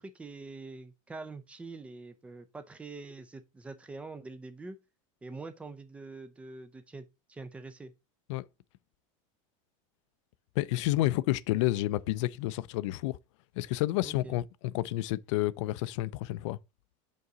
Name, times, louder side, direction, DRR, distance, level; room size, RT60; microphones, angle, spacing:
voice 1, 0.0-4.8 5.2-7.9 14.0-14.4, right 3 dB, 5° right, 0.4 m, -45 dB
voice 2, 10.6-13.2 13.6-16.6, left 16 dB, 65° left, 0.4 m, -30 dB
5.3 x 3.9 x 4.8 m
supercardioid pair, 165°, 17 cm